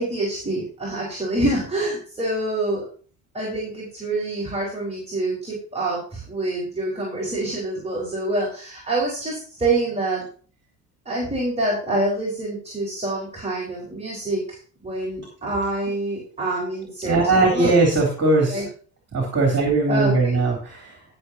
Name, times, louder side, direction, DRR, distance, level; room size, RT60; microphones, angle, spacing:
voice 1, 0.0-2.9 3.3-10.3 11.0-17.7 18.5-18.6 19.9-20.4, right 2 dB, 15° right, -4 dB, 4.4 m, -26 dB
voice 2, 17.0-18.6 19.1-21.0, right 3 dB, 30° right, 0 dB, 3.3 m, -20 dB
16.5 x 6.9 x 2.8 m, 0.41 s
hypercardioid pair, 60°, 47 cm